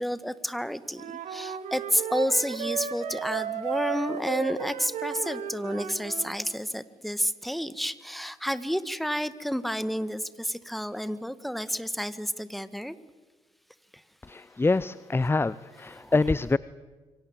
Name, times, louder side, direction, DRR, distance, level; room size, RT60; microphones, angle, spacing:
voice 1, 0.0-13.0 13.9-14.0 16.0-16.1, equal, ahead, 14 dB, 1.8 m, -30 dB
Wind instrument woodwind instrument, 1.0-6.3, right 8 dB, 65° right, 2.6 m, -34 dB
voice 2, 14.2-16.6, left 3 dB, 15° left, 19 dB, 0.7 m, -25 dB
26.5 x 24.0 x 7.5 m, 1.3 s
hypercardioid pair, 45°, 14 cm